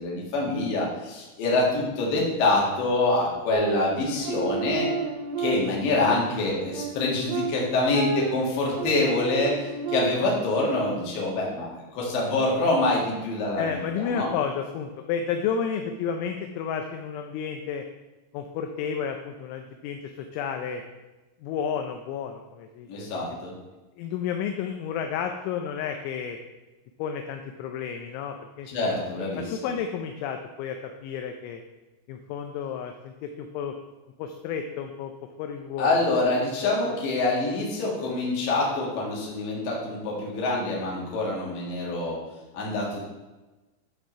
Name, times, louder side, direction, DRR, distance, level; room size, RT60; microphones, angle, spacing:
voice 1, 0.0-4.9 5.4-14.3 22.9-23.5 28.7-29.4 35.8-42.2 42.5-43.0, left 2 dB, 55° left, -3 dB, 3.3 m, -26 dB
sound 1, 3.5-6.1 6.5-10.4, right 5 dB, 80° right, 2.9 m, -31 dB
voice 2, 13.6-17.8 18.3-20.8 21.4-23.4 24.0-26.4 27.0-29.0 29.4-31.6 32.1-33.8 34.2-35.1 35.4-36.0 36.4-37.0, left 7 dB, 80° left, 5 dB, 2.9 m, -32 dB
12.0 x 4.4 x 5.5 m, 1.1 s
omnidirectional pair, 5.6 m